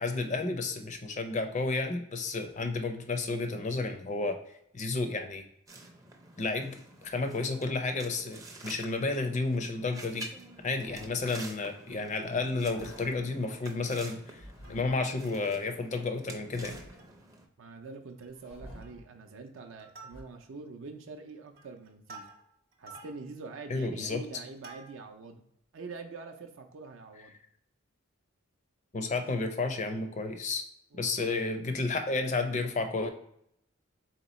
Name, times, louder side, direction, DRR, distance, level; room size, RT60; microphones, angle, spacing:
voice 1, 0.0-4.4 4.7-5.4 6.4-6.7 7.0-10.3 10.6-14.4 14.7-16.8 23.7-24.2 28.9-30.6 31.0-33.1, left 3 dB, 35° left, 6 dB, 0.5 m, -31 dB
sound 1, 5.7-17.5, right 2 dB, 15° right, 0.5 m, -49 dB
sound 2, 10.5-11.4 12.5-13.4 14.3-15.2 16.2-17.2 18.2-19.1 20.1-20.2, equal, 85° left, 0.8 m, -50 dB
Plucked string instrument, 14.4-15.2 15.7-15.8 16.0-16.2 16.7-17.3 17.6-17.8 18.1-18.5 18.8-19.2 19.6-20.6 21.1-25.3 25.8-25.9, right 3 dB, 45° right, 0.8 m, -52 dB
voice 2, 17.6-22.3 22.8-25.4 25.7-27.3 30.9-31.4, right 4 dB, 65° right, 4 dB, 0.5 m, -45 dB
3.7 x 2.8 x 4.1 m, 0.75 s
head